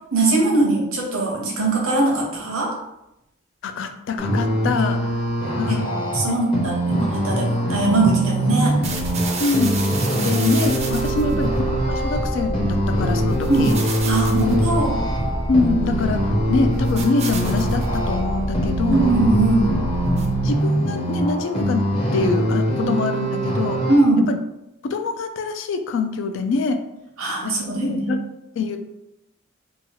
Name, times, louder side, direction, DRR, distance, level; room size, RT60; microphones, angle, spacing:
voice 1, 0.1-2.7 6.1-8.8 11.2-11.4 13.5-13.7 14.0-14.9 18.8-19.8 23.9-24.3 27.2-28.1, right 2 dB, 90° right, -1 dB, 0.8 m, -20 dB
voice 2, 3.6-5.0 5.6-5.9 6.3-6.4 9.4-9.7 10.2-13.7 14.3-14.6 15.5-19.1 20.4-21.9 22.1-23.8 24.3-24.4 24.8-26.8 27.4-27.5 27.8-28.2 28.6-28.8, left 4 dB, 65° left, 7 dB, 0.3 m, -24 dB
sound 1, 4.2-24.0, right 1 dB, 30° left, 0.7 m, -23 dB
sound 2, 8.8-20.6, right 1 dB, 30° right, 0.4 m, -28 dB
2.8 x 2.3 x 2.9 m, 0.87 s
head